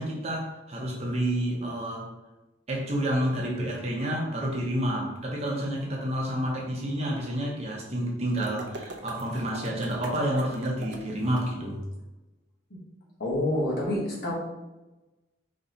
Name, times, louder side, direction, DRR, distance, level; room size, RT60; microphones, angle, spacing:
voice 1, 0.0-2.1 2.7-11.8, equal, 35° right, -2 dB, 0.8 m, -29 dB
sound 1, 8.4-11.4, right 2 dB, 70° right, 0.6 m, -42 dB
voice 2, 13.2-14.3, left 1 dB, 55° left, -5 dB, 1.5 m, -28 dB
4.2 x 3.0 x 3.9 m, 1.1 s
head